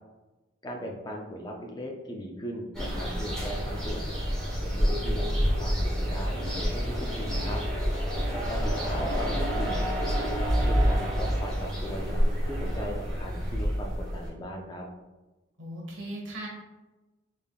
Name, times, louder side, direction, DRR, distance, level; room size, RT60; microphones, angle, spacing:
voice 1, 0.6-4.2 4.6-7.6 8.3-9.9 10.3-12.1 12.5-14.9, equal, 20° left, 0 dB, 0.4 m, -38 dB
sound 1, 2.7-14.3, equal, 5° left, 0.9 m, -28 dB
sound 2, 3.1-13.5, equal, 15° right, 1.4 m, -42 dB
voice 2, 15.6-16.5, right 1 dB, 90° right, -2 dB, 1.2 m, -38 dB
3.5 x 3.3 x 2.3 m, 1.1 s
head